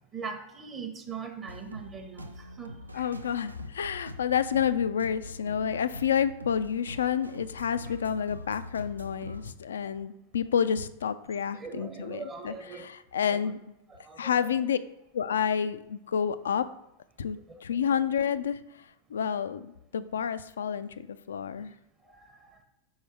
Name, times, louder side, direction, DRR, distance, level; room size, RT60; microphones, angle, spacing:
voice 1, 0.1-3.1 11.5-12.9 13.3-13.5 13.9-14.3 17.5-17.6 21.6-21.7 22.1-22.6, right 5 dB, 25° right, 5 dB, 0.8 m, -41 dB
sound 1, 1.5-9.5, left 1 dB, 85° right, 0.4 m, -44 dB
voice 2, 2.9-13.6 14.2-14.8 15.1-16.6 17.2-21.7, left 8 dB, 65° left, 14 dB, 0.3 m, -29 dB
5.5 x 4.6 x 4.5 m, 0.87 s
figure-of-eight pair, 90°, 0 cm